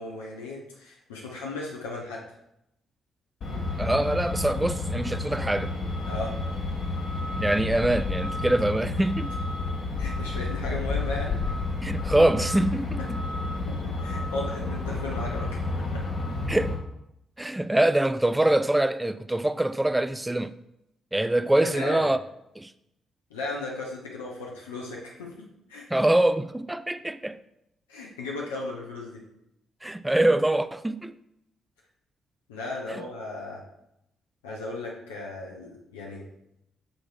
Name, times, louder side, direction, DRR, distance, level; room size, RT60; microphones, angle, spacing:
voice 1, 0.0-2.2 6.1-6.3 10.0-11.4 13.7-13.8 14.0-16.0 21.6-22.1 23.3-25.3 25.7-25.9 27.9-29.2 32.5-33.6 34.4-36.2, left 2 dB, 75° left, 0.9 m, -36 dB
Truck, 3.4-16.8, left 3 dB, 55° left, 1.6 m, -30 dB
voice 2, 3.8-5.8 7.4-9.3 11.8-13.2 16.5-16.8 17.4-20.5 21.1-22.2 22.6-22.7 25.9-27.4 29.8-31.2 32.9-33.0, right 1 dB, 10° right, 0.4 m, -24 dB
6.8 x 3.1 x 4.7 m
figure-of-eight pair, 40°, 0 cm